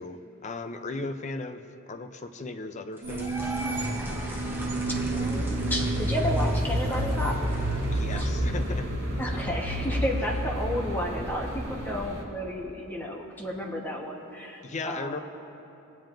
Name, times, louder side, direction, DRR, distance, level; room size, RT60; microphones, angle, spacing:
voice 1, 0.0-1.6 1.9-3.6 7.9-8.9 9.5-9.6 10.2-10.3 14.6-15.2, left 3 dB, 35° left, 7 dB, 0.5 m, -36 dB
sound 1, 3.0-9.0, right 1 dB, 10° right, 0.8 m, -42 dB
sound 2, 3.0-12.2, right 1 dB, 60° right, 1.7 m, -29 dB
voice 2, 4.9-7.4 8.1-8.3 9.2-15.2, equal, 10° left, -2 dB, 1.1 m, -32 dB
20.5 x 8.9 x 2.6 m, 2.8 s
head